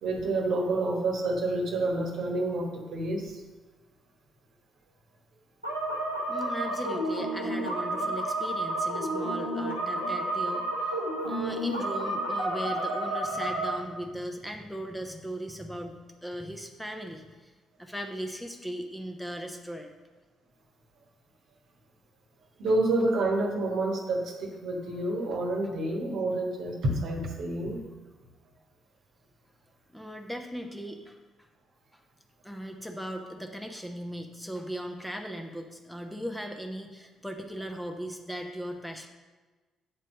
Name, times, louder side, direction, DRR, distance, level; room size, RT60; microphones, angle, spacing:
voice 1, 0.0-3.4 22.6-27.8, right 2 dB, 55° right, 2 dB, 1.2 m, -28 dB
sound 1, 5.6-13.8, right 1 dB, 90° right, 0.8 m, -30 dB
voice 2, 6.3-11.0 11.2-17.5 17.8-19.9 29.9-31.5 31.9-32.0 32.4-39.1, equal, 5° left, 3 dB, 0.9 m, -38 dB
8.4 x 4.4 x 6.4 m, 1.3 s
figure-of-eight pair, 45°, 0 cm